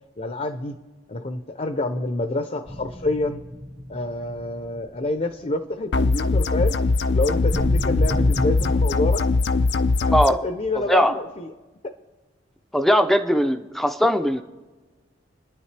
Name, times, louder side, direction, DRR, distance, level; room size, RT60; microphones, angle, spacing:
voice 1, 0.2-0.8 1.1-3.5 3.9-6.8 7.1-9.2 10.0-11.5 11.8-11.9, left 2 dB, 40° left, 8 dB, 0.7 m, -27 dB
sound 1, 2.7-5.5 5.8-6.0 7.5-8.8, equal, 15° right, 0.9 m, -31 dB
sound 2, 5.9-10.3, left 3 dB, 65° left, 0.5 m, -21 dB
voice 2, 10.7-11.1 12.7-14.4, equal, ahead, 7 dB, 0.6 m, -19 dB
29.0 x 10.0 x 3.4 m, 1.2 s
head